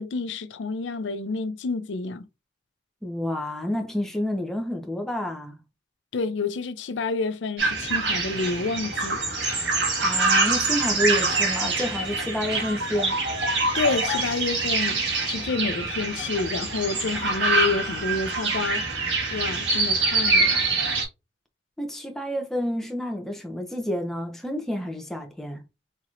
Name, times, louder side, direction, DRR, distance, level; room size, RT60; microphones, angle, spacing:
voice 1, 0.0-2.3 6.1-9.2 13.7-20.7, left 4 dB, 85° left, 0.5 m, -29 dB
voice 2, 3.0-5.6 10.0-13.2 21.8-25.6, left 1 dB, ahead, 0.7 m, -29 dB
sound 1, 7.6-21.1, right 3 dB, 75° right, 1.6 m, -25 dB
4.5 x 2.9 x 2.4 m
head